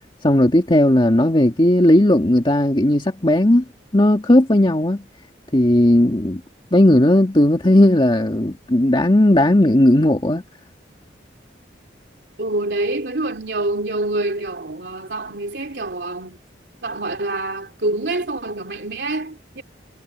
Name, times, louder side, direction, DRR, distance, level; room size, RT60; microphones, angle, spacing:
voice 1, 0.2-3.6 3.9-5.0 5.5-6.4 6.7-10.4, left 1 dB, 25° left, 1.8 m, -15 dB
voice 2, 12.4-16.4 16.8-19.6, right 2 dB, 65° right, 3.1 m, -26 dB
head